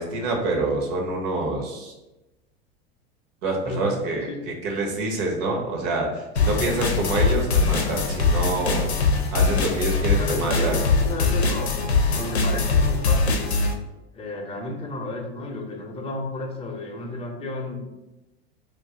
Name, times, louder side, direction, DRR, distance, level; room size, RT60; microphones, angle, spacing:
voice 1, 0.0-1.9 3.4-8.8 9.3-10.8, right 2 dB, 55° right, 1 dB, 1.0 m, -26 dB
sound 1, 6.4-13.7, left 4 dB, 85° left, 0.6 m, -22 dB
voice 2, 10.2-11.7 12.1-13.5 14.1-17.8, left 2 dB, 20° left, 0 dB, 0.6 m, -32 dB
2.6 x 2.5 x 3.5 m, 1.0 s
hypercardioid pair, 85°, 32 cm